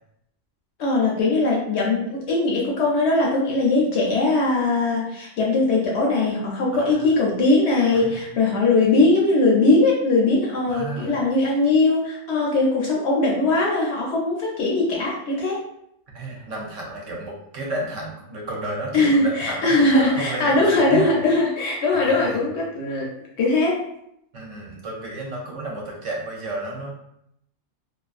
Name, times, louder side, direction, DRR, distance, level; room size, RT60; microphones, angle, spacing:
voice 1, 0.8-15.6 18.9-23.1 23.4-23.8, left 2 dB, 65° left, -3 dB, 0.7 m, -20 dB
voice 2, 6.7-7.1 7.9-8.3 10.7-11.1 16.1-21.1 21.9-22.4 24.3-26.9, right 2 dB, 70° right, -1 dB, 0.9 m, -32 dB
2.4 x 2.3 x 2.4 m, 0.75 s
omnidirectional pair, 1.4 m